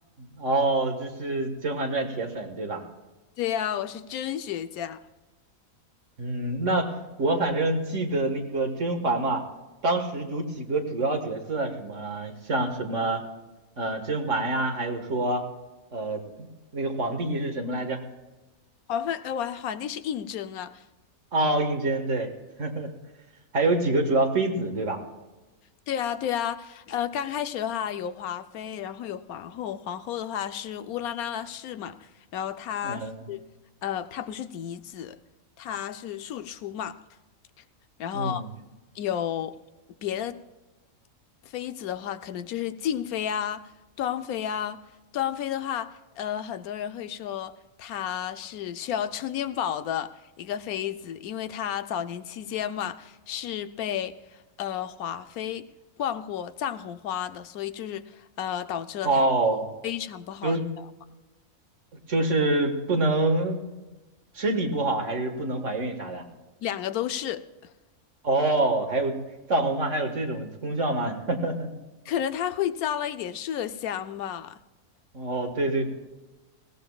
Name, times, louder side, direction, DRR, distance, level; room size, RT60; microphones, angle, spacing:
voice 1, 0.2-2.8 6.2-9.4 9.8-13.2 13.8-15.4 15.9-16.5 16.7-18.0 21.3-22.3 22.6-22.9 23.5-25.0 32.8-33.3 38.1-38.5 59.0-59.7 60.4-60.7 62.1-63.6 64.4-66.2 68.2-69.2 69.5-71.7 75.1-75.9, right 2 dB, 60° right, 1.9 m, -26 dB
voice 2, 3.4-5.0 18.9-20.8 25.9-33.0 33.3-33.4 33.8-35.2 35.6-37.0 38.0-38.5 38.9-39.6 40.0-40.4 41.4-43.7 44.0-44.8 45.1-54.2 54.6-55.7 56.0-59.2 59.8-60.6 66.6-67.7 72.1-74.6, left 10 dB, 85° left, 1.2 m, -32 dB
21.0 x 17.0 x 2.3 m
omnidirectional pair, 1.5 m